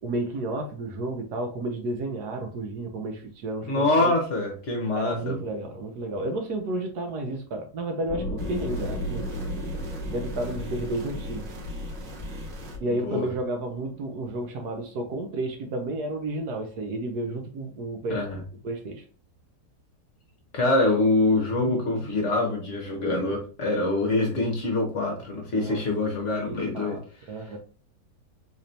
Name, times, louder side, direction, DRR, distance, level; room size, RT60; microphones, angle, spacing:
voice 1, 0.0-4.1 4.9-9.3 10.1-11.5 12.8-18.2 18.6-19.0 25.6-25.8 26.4-27.6, right 2 dB, 70° right, 1.2 m, -32 dB
voice 2, 3.7-5.4 13.0-13.3 18.1-18.4 20.5-27.0, left 2 dB, 50° left, 1.1 m, -25 dB
sound 1, 8.1-15.5, equal, 30° left, 1.4 m, -36 dB
sound 2, 8.4-12.8, left 1 dB, 85° right, 1.7 m, -38 dB
4.1 x 3.2 x 2.7 m
omnidirectional pair, 1.9 m